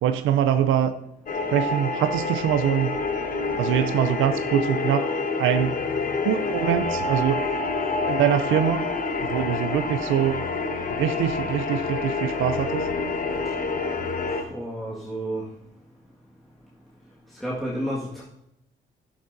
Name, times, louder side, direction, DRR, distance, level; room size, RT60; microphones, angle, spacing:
voice 1, 0.0-1.0 1.5-3.0 3.6-5.1 5.4-5.8 6.2-7.5 8.1-8.9 9.2-10.5 10.9-12.9, right 10 dB, 85° right, 10 dB, 0.5 m, -24 dB
sound 1, 1.3-14.4, left 3 dB, 45° left, 1.1 m, -27 dB
voice 2, 14.3-15.4 17.4-18.2, right 1 dB, ahead, -7 dB, 1.7 m, -31 dB
12.0 x 11.0 x 2.6 m, 0.84 s
cardioid pair, 90°, 20 cm